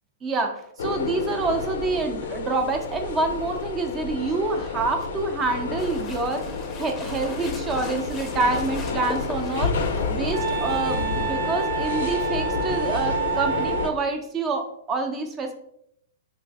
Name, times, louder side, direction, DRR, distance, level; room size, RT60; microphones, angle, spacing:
voice 1, 0.2-15.5, right 3 dB, 25° right, 5 dB, 0.5 m, -27 dB
sound 1, 0.8-13.9, left 4 dB, 75° left, 0.5 m, -30 dB
sound 2, 5.8-11.1, left 4 dB, 25° left, 0.6 m, -38 dB
Wind instrument woodwind instrument, 10.3-14.0, right 10 dB, 70° right, 0.4 m, -29 dB
3.1 x 2.5 x 3.5 m, 0.73 s
hypercardioid pair, 130°, 0 cm